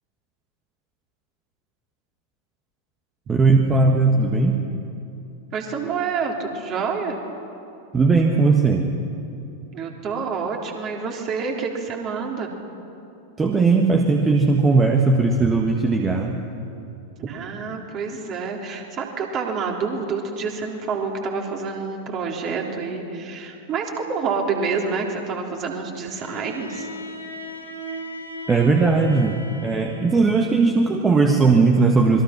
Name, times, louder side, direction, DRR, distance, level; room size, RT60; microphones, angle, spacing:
voice 1, 3.3-4.6 7.9-8.9 13.4-16.4 28.5-32.2, right 3 dB, 15° right, 2 dB, 1.6 m, -18 dB
voice 2, 5.5-7.2 9.7-12.5 17.2-26.9, right 5 dB, 35° right, 1 dB, 3.6 m, -28 dB
Bowed string instrument, 26.1-30.4, equal, 85° left, 3.8 m, -37 dB
26.5 x 22.5 x 6.0 m, 2.7 s
figure-of-eight pair, 90°, 0 cm